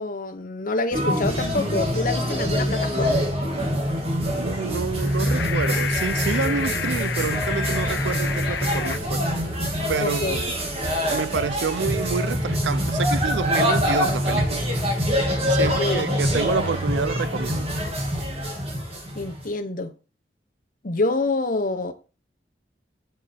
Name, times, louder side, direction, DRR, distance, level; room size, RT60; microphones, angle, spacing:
voice 1, 0.0-3.2 10.0-10.4 15.5-16.1 19.1-19.9 20.8-21.9, left 2 dB, 50° left, 0.9 m, -27 dB
sound 1, 0.9-19.5, equal, 35° right, 1.9 m, -25 dB
voice 2, 4.4-9.2 9.9-10.4 11.1-14.7 15.5-17.7, right 5 dB, 85° right, 0.5 m, -28 dB
sound 2, 5.0-9.0, left 7 dB, 85° left, 0.6 m, -30 dB
8.5 x 4.8 x 4.4 m
head